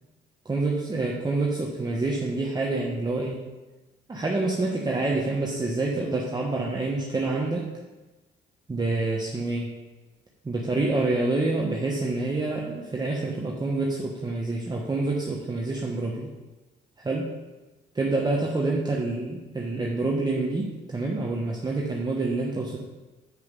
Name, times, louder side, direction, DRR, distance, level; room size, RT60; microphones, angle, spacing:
voice 1, 0.4-3.4 4.1-7.7 8.7-9.7 10.4-16.3 17.0-17.3 17.9-22.8, right 2 dB, 20° right, -2 dB, 1.2 m, -27 dB
7.7 x 6.6 x 5.3 m, 1.2 s
cardioid pair, 90°, 20 cm